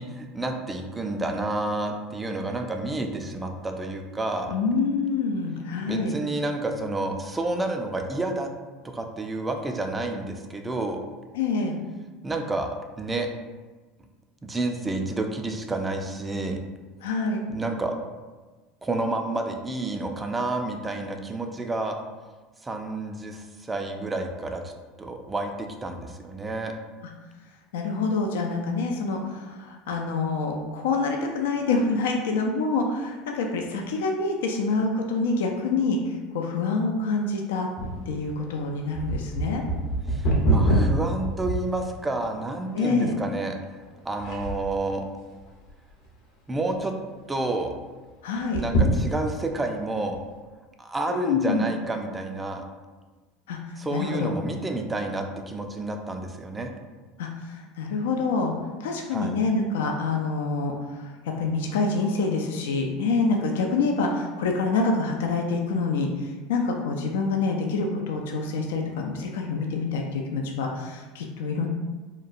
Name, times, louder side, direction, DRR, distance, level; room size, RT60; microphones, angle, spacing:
voice 1, 0.0-4.5 5.8-8.5 8.8-11.0 12.2-12.7 13.0-13.3 14.4-16.6 17.5-17.9 18.8-22.0 22.6-24.7 25.0-26.7 40.1-43.6 44.0-45.0 46.5-46.9 47.3-47.7 48.6-50.2 50.8-52.6 53.8-56.7 59.1-59.4, right 2 dB, 15° right, 4 dB, 0.4 m, -30 dB
voice 2, 4.5-6.1 11.4-11.7 17.0-17.4 27.7-36.0 36.3-37.7 38.1-39.6 42.7-43.1 48.2-48.6 51.1-51.6 53.5-53.6 53.9-54.3 57.2-57.3 57.8-58.5 58.8-60.7 61.3-66.1 66.5-71.7, left 3 dB, 80° left, 2 dB, 0.3 m, -26 dB
sound 1, 37.8-42.2 42.8-42.9 43.6-43.9 44.2-44.9 45.4-46.1 46.4-46.5 46.8-46.9 48.4-49.5 50.1-50.2, right 1 dB, 65° left, 0.7 m, -25 dB
2.9 x 2.2 x 2.4 m, 1.3 s
hypercardioid pair, 85°, 0 cm